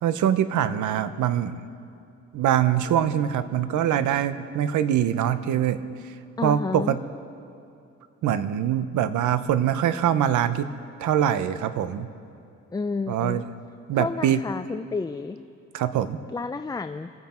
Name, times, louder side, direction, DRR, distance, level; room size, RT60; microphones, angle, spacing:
voice 1, 0.0-1.5 2.3-5.8 6.0-6.1 6.4-7.0 8.2-10.7 11.0-12.1 13.1-13.5 13.9-14.4 15.7-16.2, right 10 dB, 75° right, 12 dB, 0.9 m, -23 dB
voice 2, 6.4-7.0 12.7-13.4 13.9-15.4 16.3-17.1, left 4 dB, 15° left, 9 dB, 0.4 m, -30 dB
27.0 x 9.5 x 4.4 m, 2.6 s
cardioid pair, 90°, 30 cm